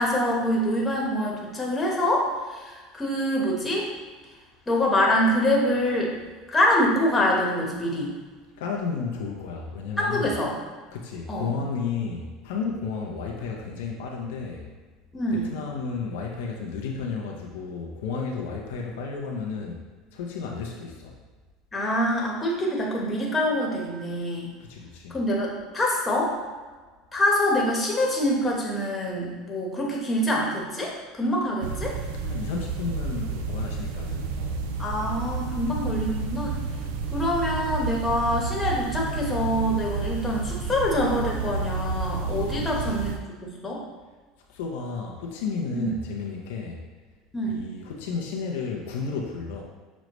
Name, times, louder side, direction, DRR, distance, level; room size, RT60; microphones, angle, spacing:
voice 1, 0.0-3.9 4.7-6.1 6.5-8.1 10.0-10.5 11.3-11.5 15.1-15.4 21.7-24.5 25.1-26.3 27.1-32.0 34.8-36.5 37.1-43.8 45.7-45.9 47.3-47.6, left 1 dB, 20° left, -2 dB, 1.0 m, -25 dB
voice 2, 8.6-10.3 10.9-14.7 15.3-19.8 20.1-21.2 24.6-25.2 32.2-34.6 42.5-42.9 44.5-46.8 47.4-49.6, left 5 dB, 85° left, 0 dB, 0.5 m, -32 dB
sound 1, 31.6-43.2, right 4 dB, 85° right, 0.4 m, -30 dB
6.2 x 2.1 x 3.0 m, 1.4 s
supercardioid pair, 105°, 0 cm